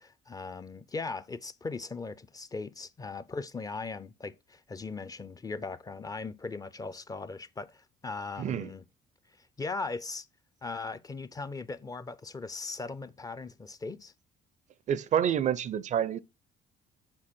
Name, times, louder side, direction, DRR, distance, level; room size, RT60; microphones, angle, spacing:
voice 1, 0.0-8.8 9.4-10.3 10.6-14.1, left 3 dB, 20° left, 0.5 m, -39 dB
voice 2, 8.4-8.7 14.9-16.2, right 9 dB, 45° right, 0.5 m, -28 dB
7.6 x 4.1 x 4.3 m
cardioid pair, 110°, 17 cm